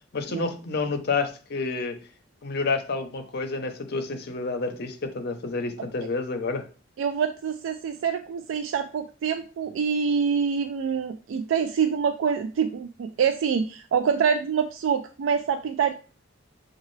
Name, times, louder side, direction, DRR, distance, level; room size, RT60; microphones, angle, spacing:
voice 1, 0.1-2.0 2.4-6.6, left 3 dB, 55° left, 6 dB, 0.7 m, -29 dB
voice 2, 7.0-15.9, right 6 dB, 70° right, 7 dB, 0.3 m, -26 dB
6.3 x 2.4 x 3.1 m, 0.37 s
head